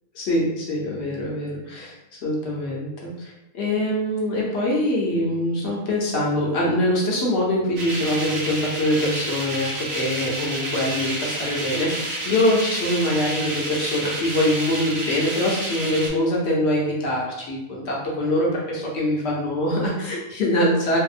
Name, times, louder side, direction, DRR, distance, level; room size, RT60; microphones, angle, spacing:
voice 1, 0.2-2.0 2.2-21.0, left 1 dB, 60° left, -3 dB, 0.8 m, -24 dB
sound 1, 7.8-16.1, right 1 dB, 75° right, 1.0 m, -30 dB
2.7 x 2.1 x 2.4 m, 0.94 s
omnidirectional pair, 1.5 m